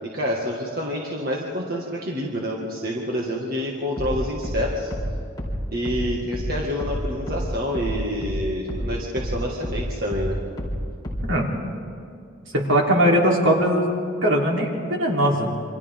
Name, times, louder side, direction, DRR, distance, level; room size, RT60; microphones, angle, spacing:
voice 1, 0.0-4.9 5.7-10.4, equal, 50° right, -2 dB, 2.0 m, -28 dB
sound 1, 4.0-8.9 9.2-11.4, equal, 20° left, 4.2 m, -29 dB
voice 2, 12.5-13.9 14.2-15.5, equal, 70° right, -1 dB, 3.6 m, -20 dB
28.5 x 25.5 x 3.8 m, 2.5 s
head